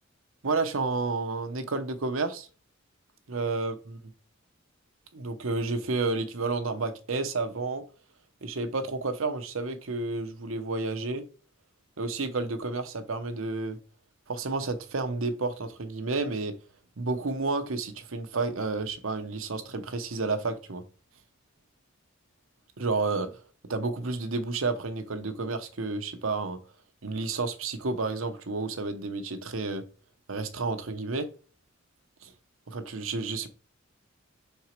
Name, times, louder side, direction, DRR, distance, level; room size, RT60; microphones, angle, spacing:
voice 1, 0.4-2.5 3.3-4.0 5.1-7.8 8.4-11.2 12.0-13.8 14.3-16.5 17.0-20.8 22.8-23.3 23.7-26.6 27.0-29.8 30.3-31.3 32.2-32.3 32.7-33.5, right 3 dB, 75° right, 0.9 m, -31 dB
5.9 x 4.5 x 4.4 m
head